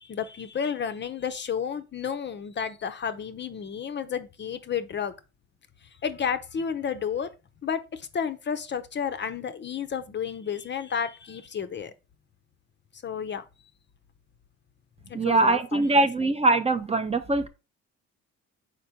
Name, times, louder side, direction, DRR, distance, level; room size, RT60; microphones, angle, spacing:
voice 1, 0.0-5.1 6.0-7.3 7.6-11.9 13.0-13.4 15.1-16.3, left 7 dB, 35° left, 0.5 m, -31 dB
voice 2, 15.1-17.5, right 2 dB, 20° right, 0.5 m, -22 dB
4.3 x 4.3 x 2.7 m
supercardioid pair, 75°, 32 cm